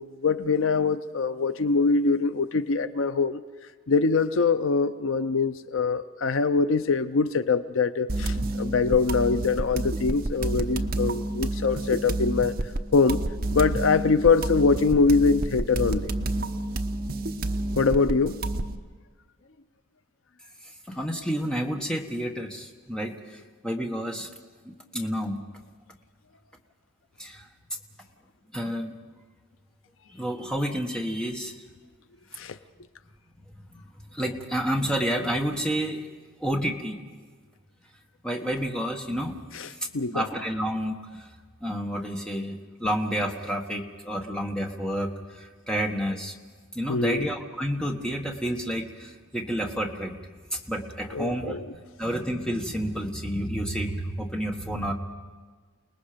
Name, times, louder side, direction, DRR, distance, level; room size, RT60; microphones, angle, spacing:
voice 1, 0.0-3.4 3.9-12.5 12.9-13.2 13.5-16.1 17.8-18.4 32.4-32.6 39.5-40.3 46.9-47.3 51.1-51.7, left 4 dB, 70° left, 0.6 m, -23 dB
sound 1, 8.1-18.8, right 2 dB, 45° right, 0.9 m, -29 dB
voice 2, 20.9-24.3 24.6-25.4 27.2-27.5 28.5-28.9 30.1-31.5 33.7-33.8 34.1-36.0 36.4-37.0 38.2-39.3 40.1-41.3 41.6-46.3 46.7-50.1 50.5-51.6 52.0-54.9, equal, 5° left, 1.5 m, -30 dB
29.0 x 19.5 x 5.2 m
head